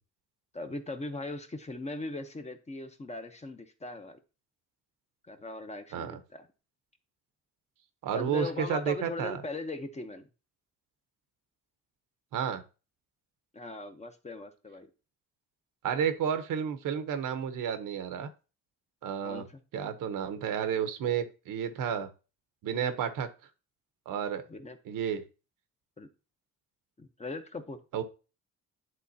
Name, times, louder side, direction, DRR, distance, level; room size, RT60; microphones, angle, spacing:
voice 1, 0.5-4.2 5.3-6.5 8.1-10.3 13.5-14.9 19.2-19.6 24.5-24.8 26.0-26.1 27.0-27.8, left 2 dB, 20° left, 7 dB, 0.9 m, -39 dB
voice 2, 8.0-9.4 12.3-12.6 15.8-18.3 19.0-19.4 19.7-22.1 22.6-23.3 24.1-24.4 24.8-25.2 27.9-28.0, right 8 dB, 75° right, 9 dB, 1.0 m, -31 dB
10.5 x 3.8 x 2.8 m, 0.33 s
cardioid pair, 100°, 32 cm